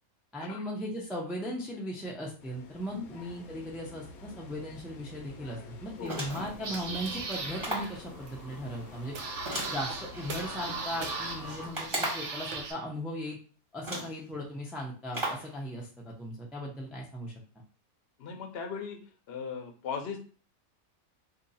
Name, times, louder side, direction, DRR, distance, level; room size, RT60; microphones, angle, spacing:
voice 1, 0.3-9.1 9.7-13.4 13.7-17.3, equal, ahead, -2 dB, 0.3 m, -38 dB
sound 1, 2.4-11.7, left 4 dB, 80° left, 1.1 m, -48 dB
sound 2, 6.0-6.6 7.6-8.0 9.5-10.4 11.7-12.4 13.3-13.4 13.8-14.2 15.1-15.5, right 1 dB, 20° right, 1.1 m, -35 dB
sound 3, 6.2-12.7, right 4 dB, 65° right, 0.9 m, -39 dB
voice 2, 18.2-19.0 19.3-20.2, left 6 dB, 55° left, 3 dB, 0.8 m, -38 dB
2.8 x 2.7 x 4.0 m, 0.39 s
omnidirectional pair, 1.5 m